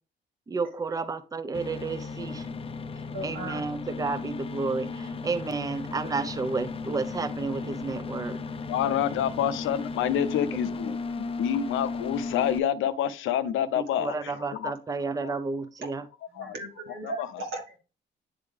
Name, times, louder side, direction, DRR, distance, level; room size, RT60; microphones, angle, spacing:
voice 1, 0.5-2.4 3.2-8.4 14.0-16.0, right 4 dB, 20° right, 0.5 m, -31 dB
sound 1, 1.5-12.6, left 4 dB, 30° left, 0.5 m, -35 dB
voice 2, 3.1-3.7 16.3-17.8, right 2 dB, 75° right, 1.7 m, -37 dB
voice 3, 8.7-14.7 15.0-15.3 16.3-16.5, left 9 dB, 85° left, 0.6 m, -28 dB
9.4 x 3.7 x 3.3 m
cardioid pair, 90°, 20 cm